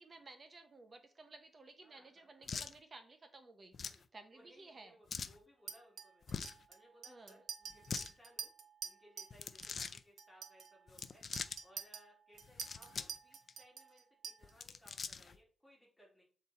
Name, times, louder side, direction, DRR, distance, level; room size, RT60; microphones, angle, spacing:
voice 1, 0.0-3.8 4.1-5.0 7.1-7.4, right 3 dB, 35° right, 6 dB, 0.8 m, -56 dB
voice 2, 1.8-2.5 3.8-4.0 4.3-6.4 6.7-8.5 8.8-11.2 11.6-16.2, equal, 5° left, -3 dB, 2.7 m, -65 dB
sound 1, 2.5-2.7 3.7-4.0 5.1-5.4 6.2-6.6 7.7-8.1 9.3-10.0 10.9-11.6 12.4-13.2 13.5-13.6 14.4-15.4, left 5 dB, 45° left, 0.4 m, -43 dB
Chink clink, 5.7-9.4 9.6-9.9 10.2-14.7, right 6 dB, 70° right, 0.8 m, -48 dB
7.9 x 4.0 x 4.3 m, 0.43 s
wide cardioid pair, 145°, 0 cm